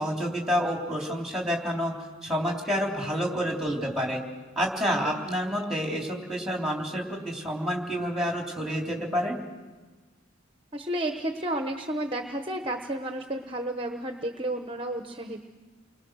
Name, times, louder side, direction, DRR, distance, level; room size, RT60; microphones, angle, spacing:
voice 1, 0.0-1.9 2.2-4.2 4.5-9.4, equal, ahead, 0 dB, 3.3 m, -28 dB
voice 2, 4.9-5.6 10.7-15.4, right 1 dB, 25° right, 5 dB, 1.0 m, -32 dB
29.5 x 22.0 x 6.4 m, 1.3 s
head